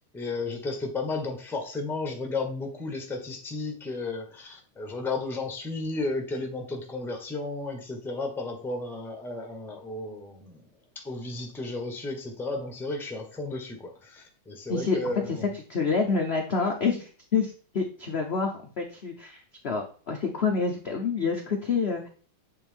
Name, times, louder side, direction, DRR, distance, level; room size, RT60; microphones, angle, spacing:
voice 1, 0.1-10.6 10.9-15.5, left 3 dB, ahead, 3 dB, 0.5 m, -33 dB
voice 2, 15.3-22.1, left 5 dB, 85° left, 2 dB, 0.5 m, -28 dB
7.8 x 3.5 x 3.4 m, 0.41 s
omnidirectional pair, 2.3 m